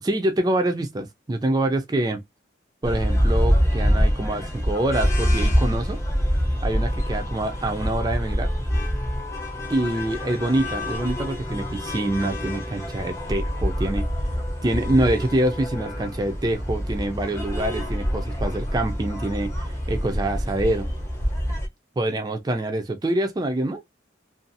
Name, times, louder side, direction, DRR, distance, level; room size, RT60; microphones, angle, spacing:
voice 1, 0.0-2.2 2.8-6.0 6.6-8.5 9.7-14.0 14.6-20.9 22.0-23.8, right 1 dB, 20° right, 0.3 m, -25 dB
sound 1, 2.8-21.7, equal, 15° left, 0.6 m, -25 dB
2.5 x 2.3 x 2.6 m
head